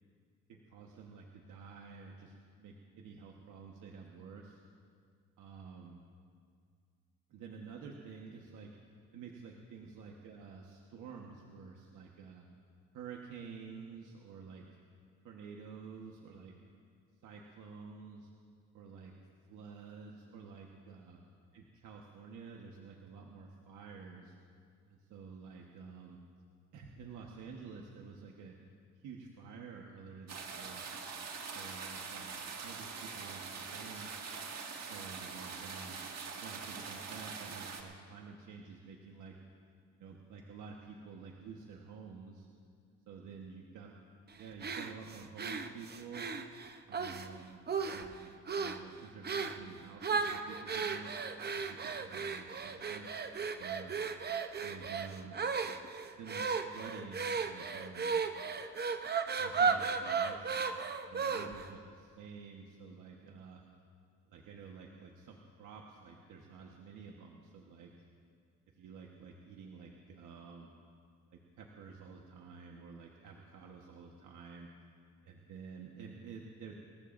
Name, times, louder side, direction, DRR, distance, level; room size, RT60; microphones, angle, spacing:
voice 1, 0.5-4.6 5.4-6.0 7.3-8.7 9.1-12.5 12.9-14.6 15.2-16.5 17.2-18.3 18.7-19.1 19.5-21.2 21.5-24.3 24.9-26.2 26.7-28.6 29.0-30.8 31.3-34.2 34.9-35.9 36.3-39.3 39.9-42.5 43.1-43.9 44.3-46.3 46.9-51.1 51.5-53.1 53.5-53.9 54.6-55.4 56.2-58.2 59.4-60.6 61.1-63.6 64.3-68.0 68.8-70.7 71.3-74.7 75.2-76.7, right 5 dB, 80° right, 0 dB, 1.3 m, -50 dB
sound 1, 30.3-37.8, right 5 dB, 60° right, 1.9 m, -43 dB
sound 2, 44.6-47.3 47.7-48.2 48.5-48.8 49.2-49.6 50.0-61.7, right 5 dB, 35° right, 0.8 m, -35 dB
30.0 x 14.5 x 2.6 m, 2.2 s
cardioid pair, 90°, 30 cm